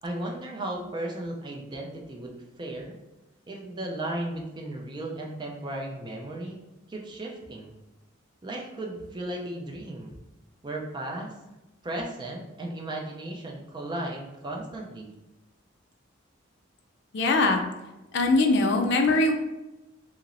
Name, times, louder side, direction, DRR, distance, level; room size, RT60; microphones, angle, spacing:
voice 1, 0.0-3.0 3.5-6.6 6.9-7.7 8.4-10.2 10.6-11.3 11.8-15.1, right 1 dB, 25° right, 0 dB, 0.4 m, -35 dB
voice 2, 17.1-17.6 18.1-19.3, left 2 dB, 60° left, 3 dB, 0.4 m, -21 dB
2.9 x 2.9 x 2.5 m, 1.0 s
head